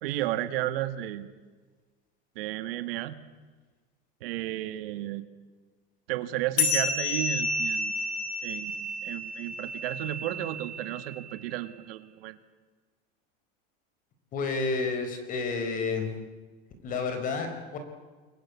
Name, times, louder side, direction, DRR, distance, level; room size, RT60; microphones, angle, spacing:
voice 1, 0.0-1.3 2.4-3.2 4.2-5.2 6.1-7.9 8.4-12.4, right 14 dB, 75° right, 11 dB, 2.0 m, -33 dB
sound 1, 6.6-11.4, left 2 dB, 45° left, 5.8 m, -31 dB
voice 2, 14.3-16.1 16.8-17.8, left 4 dB, 30° left, 7 dB, 4.6 m, -30 dB
29.0 x 22.0 x 8.5 m, 1.4 s
supercardioid pair, 175°, 29 cm